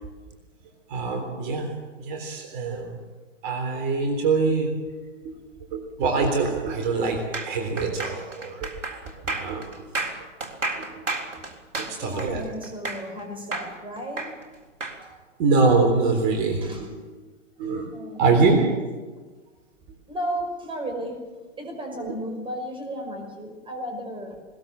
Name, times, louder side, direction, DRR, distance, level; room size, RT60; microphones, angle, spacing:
voice 1, 0.9-3.0 3.4-5.0 5.2-5.3 5.7-9.0 9.3-9.8 10.8-11.0 11.8-12.4 15.4-16.9 17.6-17.9 18.2-18.8, right 4 dB, 40° right, 4 dB, 3.7 m, -24 dB
sound 1, 7.3-13.2 13.5-15.0, right 2 dB, 80° right, 4.0 m, -32 dB
voice 2, 12.0-14.4 16.6-16.9 17.9-18.8 20.1-24.4, right 1 dB, 15° right, 4 dB, 5.4 m, -34 dB
21.0 x 19.5 x 7.6 m, 1.3 s
hypercardioid pair, 120°, 37 cm